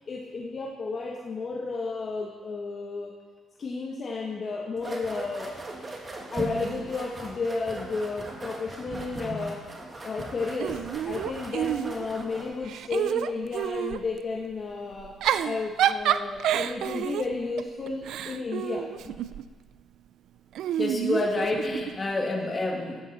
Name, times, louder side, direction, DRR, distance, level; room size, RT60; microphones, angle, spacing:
voice 1, 0.1-3.1 3.6-5.6 6.3-9.6 10.0-15.1 15.4-19.2, left 3 dB, 45° left, -2 dB, 1.3 m, -32 dB
sound 1, 4.8-12.6, right 2 dB, 30° right, 2.0 m, -39 dB
Giggle / Chuckle chortle, 10.6-12.2 12.6-14.0 15.0-19.5 20.6-22.0, right 10 dB, 80° right, 0.3 m, -29 dB
voice 2, 20.8-23.0, left 2 dB, 30° left, 0 dB, 2.2 m, -28 dB
13.0 x 9.8 x 4.2 m, 1.4 s
cardioid pair, 90°, 0 cm